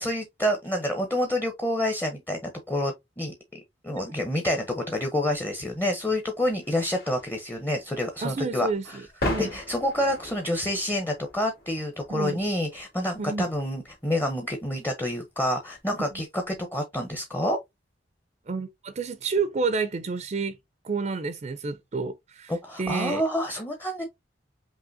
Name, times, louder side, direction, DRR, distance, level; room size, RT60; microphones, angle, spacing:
voice 1, 0.0-9.0 9.4-17.6 22.5-24.0, left 1 dB, 10° left, 0.7 m, -28 dB
sound 1, 5.3-16.6, left 1 dB, 60° left, 2.2 m, -40 dB
voice 2, 8.2-9.5 12.1-12.4 13.2-13.5 16.0-16.1 18.5-20.6 20.8-22.5 22.8-23.2, right 4 dB, 40° right, 0.4 m, -29 dB
5.4 x 2.8 x 2.6 m
head